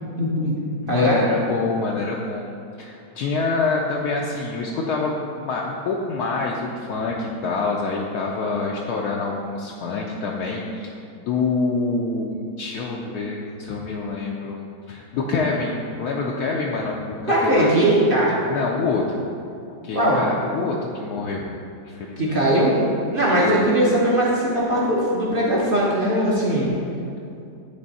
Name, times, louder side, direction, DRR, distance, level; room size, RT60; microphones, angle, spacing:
voice 1, 0.2-0.6 0.9-1.2 17.3-18.3 19.9-20.2 22.2-22.8 23.1-26.7, right 1 dB, 40° right, -5 dB, 0.9 m, -19 dB
voice 2, 0.8-2.5 2.8-11.0 11.2-17.7 18.5-19.2 19.8-21.5 21.9-22.6 23.4-23.6, left 3 dB, 75° left, -2 dB, 1.0 m, -26 dB
9.6 x 3.3 x 4.1 m, 2.6 s
omnidirectional pair, 1.8 m